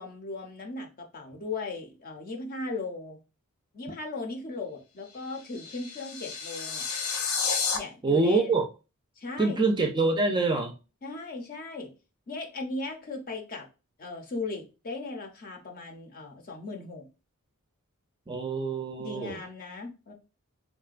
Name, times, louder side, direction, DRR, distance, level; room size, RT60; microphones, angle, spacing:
voice 1, 0.0-3.2 3.7-6.9 7.7-8.5 9.2-9.6 11.0-11.9 12.3-13.6 14.0-17.1 19.0-20.1, left 3 dB, 40° left, 2 dB, 0.6 m, -37 dB
sound 1, 5.1-7.8, left 5 dB, 85° left, 0.6 m, -31 dB
voice 2, 8.0-8.7 9.4-10.8 18.3-19.4, right 3 dB, 20° right, 4 dB, 0.4 m, -25 dB
3.7 x 2.2 x 2.4 m, 0.30 s
head